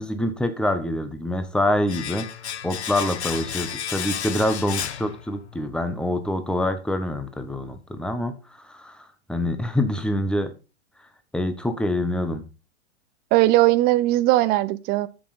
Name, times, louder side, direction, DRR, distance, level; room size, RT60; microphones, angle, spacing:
voice 1, 0.0-2.3 2.6-10.5 11.3-12.5, left 1 dB, 5° left, 1.2 m, -26 dB
Domestic sounds home sounds, 1.9-5.7 6.0-6.1, left 9 dB, 75° left, 0.7 m, -32 dB
voice 2, 13.3-15.1, right 16 dB, 30° right, 0.6 m, -19 dB
7.7 x 7.2 x 4.3 m
figure-of-eight pair, 100°, 34 cm